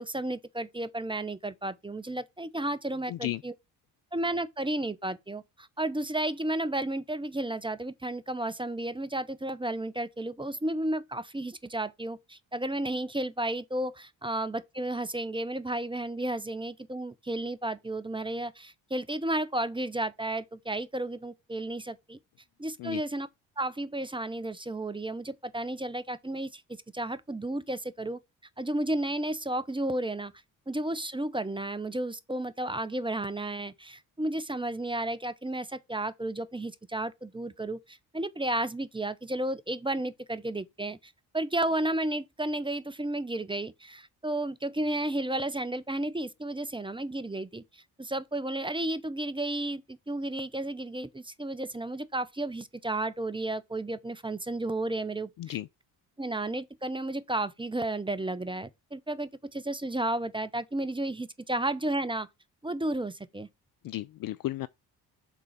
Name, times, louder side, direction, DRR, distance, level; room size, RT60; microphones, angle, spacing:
voice 1, 0.0-3.5 4.1-22.2 22.6-23.3 23.6-28.2 28.6-30.3 30.7-55.3 56.2-62.3 62.6-63.5, right 1 dB, 10° right, 0.8 m, -33 dB
voice 2, 3.1-3.4 22.8-23.0 55.4-55.7 63.8-64.7, left 15 dB, 45° left, 0.4 m, -34 dB
6.1 x 3.9 x 5.7 m
hypercardioid pair, 45°, 49 cm